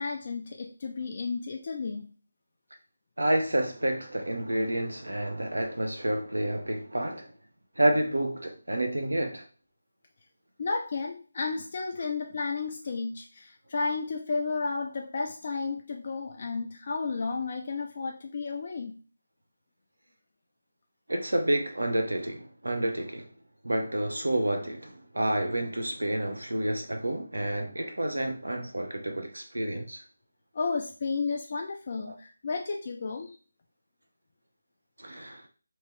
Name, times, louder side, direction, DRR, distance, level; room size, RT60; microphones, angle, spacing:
voice 1, 0.0-2.1 10.6-19.0 30.5-33.4, left 4 dB, 40° left, 0.3 m, -32 dB
voice 2, 3.2-7.3 7.8-9.4 21.1-23.3 23.6-30.0 32.1-32.2 35.0-35.4, right 1 dB, 75° right, 0.7 m, -29 dB
2.9 x 2.4 x 3.0 m
figure-of-eight pair, 160°, 0 cm